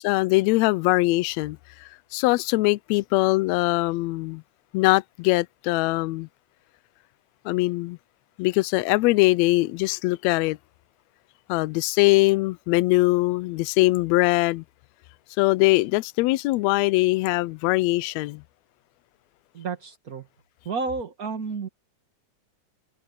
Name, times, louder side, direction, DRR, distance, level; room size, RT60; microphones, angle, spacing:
voice 1, 0.0-1.6 2.1-4.4 4.7-6.3 7.4-8.0 8.4-10.6 11.5-14.6 15.4-18.4, left 21 dB, 80° left, 1.6 m, -22 dB
voice 2, 19.5-20.3 20.7-21.7, right 4 dB, 35° right, 1.8 m, -31 dB
omnidirectional pair, 3.5 m